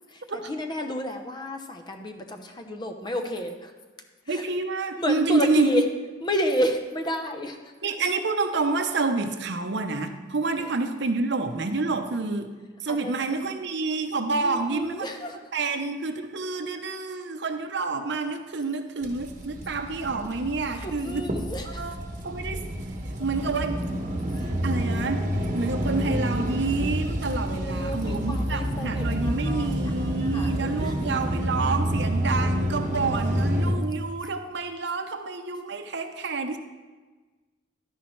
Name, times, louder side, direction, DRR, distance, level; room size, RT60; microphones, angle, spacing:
voice 1, 0.1-3.7 4.3-4.4 5.0-5.8 6.2-7.7 10.6-10.7 12.9-13.1 13.4-13.5 14.4-15.4 20.7-21.8 24.3-24.5 27.4-31.0, equal, 20° left, 5 dB, 0.7 m, -31 dB
voice 2, 4.3-5.8 7.8-12.5 12.8-15.0 15.5-21.3 21.6-21.9 22.2-22.6 23.2-23.8 24.6-25.3 25.5-36.6, right 3 dB, 60° right, 7 dB, 0.8 m, -28 dB
sound 1, 19.0-33.7, equal, 40° right, 1.1 m, -28 dB
12.0 x 10.0 x 3.2 m, 1.3 s
head